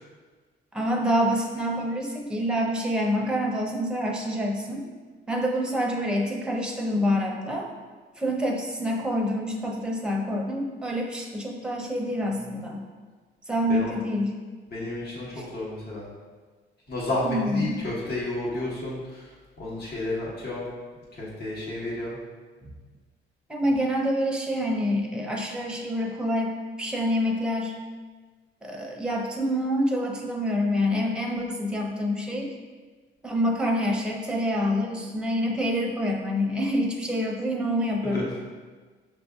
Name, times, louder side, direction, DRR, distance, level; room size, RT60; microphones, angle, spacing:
voice 1, 0.7-4.8 5.3-7.7 8.2-12.8 13.5-14.4 15.3-15.4 17.2-17.8 22.6-22.7 23.5-26.5 26.8-27.7 28.6-32.5 33.2-38.3, equal, 5° right, 0 dB, 0.7 m, -27 dB
voice 2, 14.7-16.1 16.9-19.3 19.6-20.7 21.1-22.2 38.0-38.2, left 2 dB, 55° left, -6 dB, 1.4 m, -31 dB
6.5 x 2.6 x 2.4 m, 1.4 s
cardioid pair, 90°, 20 cm